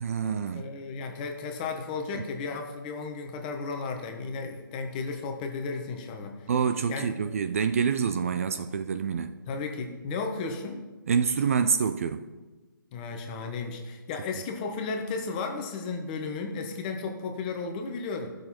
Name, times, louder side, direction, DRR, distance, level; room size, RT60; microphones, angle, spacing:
voice 1, 0.0-0.6 2.1-2.2 6.5-9.4 11.1-12.3, right 6 dB, 40° right, 0.4 m, -27 dB
voice 2, 0.5-6.3 6.9-7.1 9.5-10.8 12.9-18.3, left 4 dB, 20° left, 1.1 m, -34 dB
15.0 x 6.5 x 4.2 m
hypercardioid pair, 160°, 12 cm